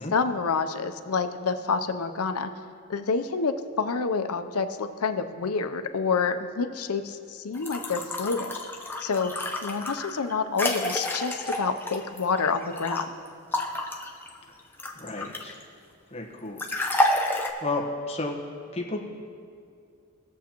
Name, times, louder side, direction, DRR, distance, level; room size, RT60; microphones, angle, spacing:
voice 1, 0.1-2.5 2.9-8.5 9.0-9.3 9.6-13.2, left 4 dB, 90° left, 8 dB, 0.6 m, -28 dB
sound 1, 7.5-13.0 13.5-15.6 16.6-17.5, left 1 dB, 10° left, 0.6 m, -29 dB
voice 2, 14.9-15.6 16.1-16.6 17.2-18.3 18.7-19.0, left 2 dB, 30° left, -1 dB, 1.1 m, -33 dB
20.0 x 7.2 x 3.0 m, 2.4 s
head